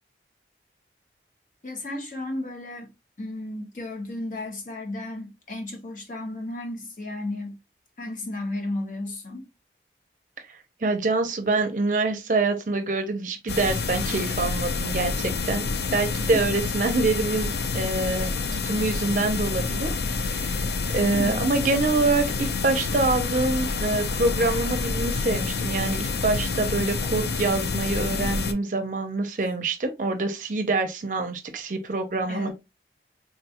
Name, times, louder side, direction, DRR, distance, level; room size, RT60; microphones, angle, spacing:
voice 1, 1.6-2.9 3.2-7.6 8.0-9.5 16.3-16.4 21.1-21.5 32.3-32.5, left 1 dB, 45° left, 0.9 m, -33 dB
voice 2, 10.8-15.6 15.9-20.6 20.9-32.5, right 3 dB, 45° right, 0.5 m, -25 dB
sound 1, 13.5-28.5, left 4 dB, 70° left, 0.4 m, -28 dB
3.6 x 2.3 x 2.8 m
head